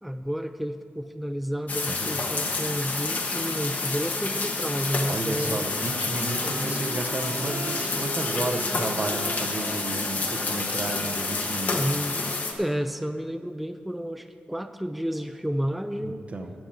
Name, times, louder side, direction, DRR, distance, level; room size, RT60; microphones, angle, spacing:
voice 1, 0.0-5.7 6.4-6.9 7.3-8.3 11.7-12.2 12.6-16.2, equal, ahead, 8 dB, 0.3 m, -31 dB
sound 1, 1.7-12.5, left 3 dB, 45° left, 1.2 m, -29 dB
voice 2, 5.1-11.8 16.0-16.5, right 2 dB, 35° right, 5 dB, 0.8 m, -33 dB
Wind instrument woodwind instrument, 5.3-12.2, right 2 dB, 80° right, 2.4 m, -40 dB
10.5 x 7.1 x 7.6 m, 2.4 s
wide cardioid pair, 135°, 4 cm